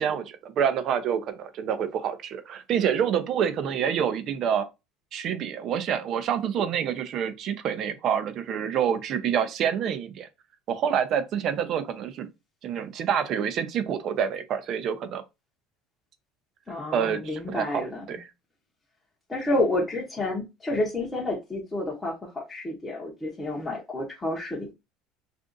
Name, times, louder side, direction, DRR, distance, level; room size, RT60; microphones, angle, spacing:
voice 1, 0.0-4.7 5.1-10.3 10.7-12.3 12.6-15.2 16.9-18.3, right 8 dB, 45° right, 0.5 m, -27 dB
voice 2, 16.7-18.0 19.3-24.7, left 1 dB, 10° left, 0.8 m, -29 dB
2.5 x 2.4 x 3.7 m
cardioid pair, 140°, 0 cm